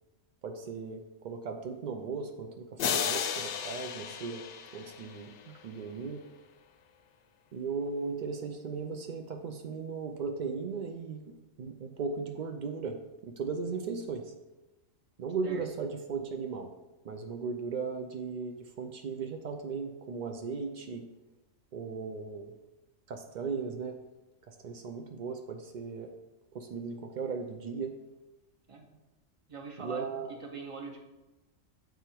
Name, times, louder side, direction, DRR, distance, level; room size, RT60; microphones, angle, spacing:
voice 1, 0.4-4.4 4.7-6.2 7.5-14.3 15.2-16.7 17.0-21.1 21.7-22.5 23.1-24.0 24.5-26.1 26.5-27.9 29.8-30.3, right 5 dB, 80° right, 5 dB, 0.4 m, -37 dB
sound 1, 2.8-5.7, left 8 dB, 70° left, 0.8 m, -34 dB
voice 2, 29.5-30.0 30.4-31.0, right 4 dB, 30° right, 2 dB, 0.7 m, -42 dB
7.7 x 3.4 x 4.4 m, 1.1 s
omnidirectional pair, 1.4 m